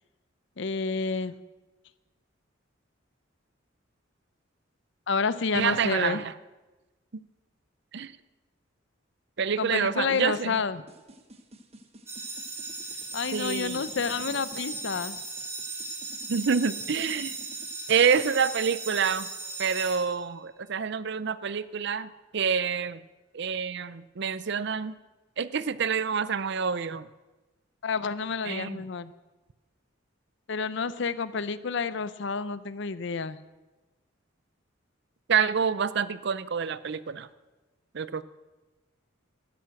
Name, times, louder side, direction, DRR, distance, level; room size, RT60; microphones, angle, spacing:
voice 1, 0.6-1.3 5.1-6.2 9.6-10.8 13.1-15.2 27.8-29.1 30.5-33.4, left 5 dB, 65° left, 15 dB, 0.6 m, -29 dB
voice 2, 5.5-6.3 7.9-8.1 9.4-10.6 13.3-13.8 16.3-17.3 17.9-19.3 19.6-23.0 23.3-25.0 25.4-27.1 28.5-28.8 35.3-37.3 37.9-38.2, right 6 dB, 60° right, 16 dB, 0.6 m, -27 dB
sound 1, 10.9-17.7, right 1 dB, 30° right, 1.2 m, -50 dB
sound 2, 12.1-20.7, right 3 dB, 15° right, 2.4 m, -38 dB
12.0 x 10.5 x 7.6 m, 1.1 s
head